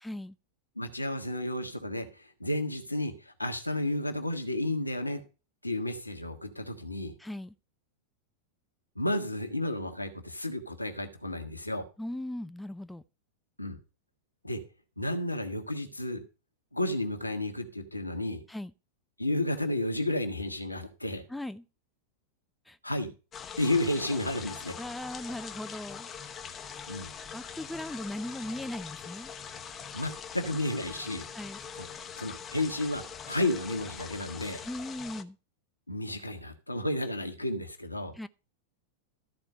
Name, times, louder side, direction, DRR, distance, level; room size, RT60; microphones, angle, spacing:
voice 1, 0.0-0.4 7.2-7.5 12.0-13.0 18.5-18.7 21.3-21.6 22.7-22.8 24.8-26.1 26.7-26.9 27.3-29.3 31.3-31.6 34.6-35.4 38.1-38.3, left 1 dB, 5° left, 0.4 m, -38 dB
voice 2, 0.8-5.2 5.6-7.1 8.9-11.9 13.6-13.8 14.4-14.6 15.0-16.2 16.7-18.4 19.2-21.2 22.8-23.1 23.6-24.7 26.9-27.1 29.9-31.2 31.8-31.9 32.2-34.6 35.9-38.1, left 1 dB, 85° left, 1.3 m, -32 dB
sound 1, 23.3-35.2, left 7 dB, 25° left, 0.8 m, -43 dB
13.0 x 4.4 x 6.4 m
figure-of-eight pair, 90°, 0 cm